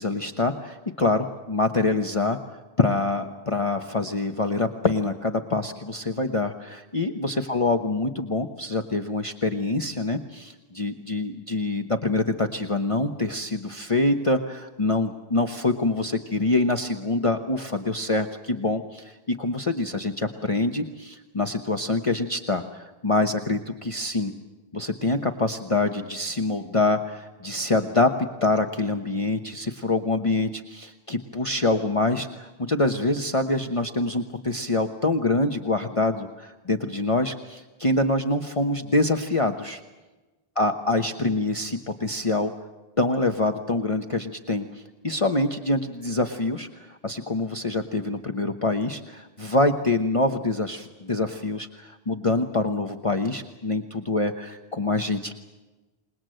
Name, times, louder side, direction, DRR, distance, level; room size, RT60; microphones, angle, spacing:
voice 1, 0.0-2.4 2.8-19.1 19.4-24.3 24.7-39.8 40.6-42.5 43.0-55.4, left 2 dB, 35° left, 5 dB, 1.1 m, -25 dB
27.0 x 20.5 x 7.8 m, 1.1 s
omnidirectional pair, 1.0 m